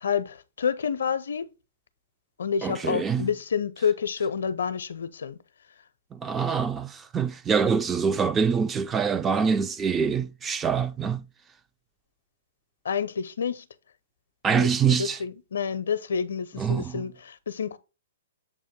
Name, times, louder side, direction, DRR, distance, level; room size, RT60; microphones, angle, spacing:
voice 1, 0.0-1.5 2.4-5.4 12.8-13.6 14.5-17.8, left 6 dB, 65° left, 0.5 m, -29 dB
voice 2, 2.6-3.3 6.1-11.3 14.4-15.2 16.6-17.0, right 6 dB, 15° right, 0.3 m, -25 dB
7.1 x 2.6 x 5.0 m
figure-of-eight pair, 115°, 0 cm